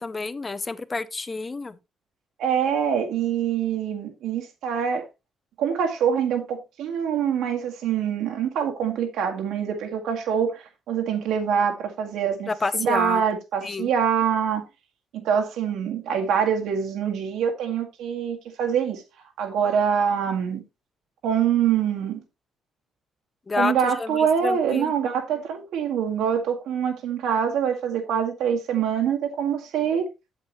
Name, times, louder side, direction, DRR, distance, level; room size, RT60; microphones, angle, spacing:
voice 1, 0.0-1.8 12.5-13.2 13.6-13.9 23.5-24.9, left 3 dB, 20° left, 0.6 m, -29 dB
voice 2, 2.4-5.0 5.6-14.7 15.1-19.0 19.4-20.6 21.2-22.2 23.6-30.1, right 8 dB, 90° right, 1.9 m, -25 dB
8.7 x 8.0 x 3.1 m
cardioid pair, 140°, 0 cm